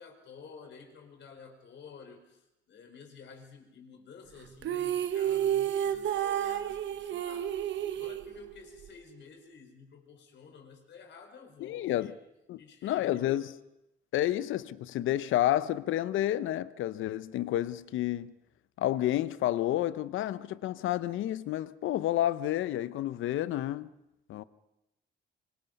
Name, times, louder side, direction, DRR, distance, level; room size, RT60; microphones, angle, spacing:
voice 1, 0.0-7.5 8.0-12.2 12.6-13.4, left 5 dB, 65° left, 5.0 m, -52 dB
sound 1, 4.6-8.9, right 10 dB, 70° right, 1.1 m, -31 dB
voice 2, 11.6-12.1 12.5-13.5 14.1-18.3 18.8-23.9 24.3-24.4, left 13 dB, 85° left, 0.9 m, -30 dB
25.5 x 25.0 x 5.4 m
cardioid pair, 90°, 20 cm